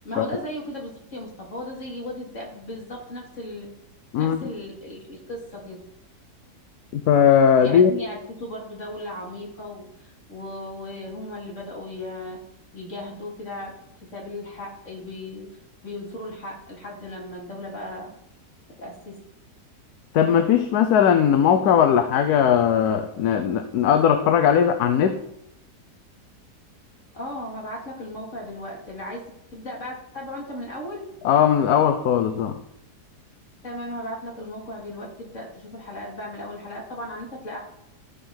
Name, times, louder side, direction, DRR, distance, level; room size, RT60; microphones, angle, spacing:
voice 1, 0.0-3.7 4.2-5.8 7.6-12.4 12.7-13.7 14.1-15.5 15.8-18.1 18.8-19.1 27.1-29.2 29.5-31.0 33.6-37.6, left 1 dB, 45° left, -2 dB, 3.1 m, -36 dB
voice 2, 6.9-7.9 20.1-25.2 31.2-32.6, left 8 dB, 70° left, 8 dB, 1.2 m, -19 dB
14.0 x 5.0 x 5.8 m, 0.78 s
omnidirectional pair, 1.8 m